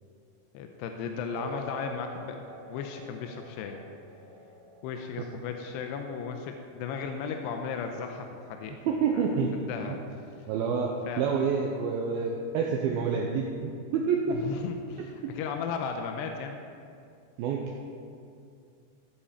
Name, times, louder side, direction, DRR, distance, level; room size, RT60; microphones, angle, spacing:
voice 1, 0.5-3.8 4.8-10.0 11.0-11.3 14.3-16.6, left 6 dB, 80° left, 4 dB, 2.6 m, -36 dB
sound 1, 1.3-9.3, right 1 dB, 40° right, 2.8 m, -47 dB
voice 2, 8.9-9.5 9.9-10.0 10.5-14.4 17.4-17.6, right 6 dB, 80° right, 0 dB, 2.2 m, -28 dB
16.0 x 8.8 x 4.4 m, 2.5 s
omnidirectional pair, 5.1 m